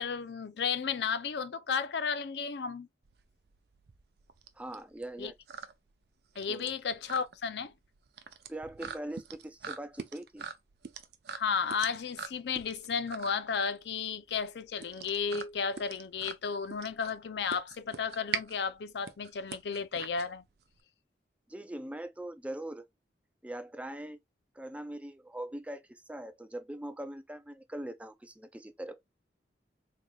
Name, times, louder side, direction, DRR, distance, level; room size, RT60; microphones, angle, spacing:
voice 1, 0.0-2.9 5.2-5.3 6.4-7.7 11.3-20.4, left 6 dB, 75° left, 0.5 m, -33 dB
sound 1, 3.0-20.8, right 6 dB, 65° right, 0.5 m, -43 dB
voice 2, 4.6-5.3 6.5-6.7 8.5-10.5 21.5-22.8 23.4-24.2 24.5-29.0, right 1 dB, 5° right, 0.3 m, -41 dB
3.8 x 3.2 x 2.3 m
head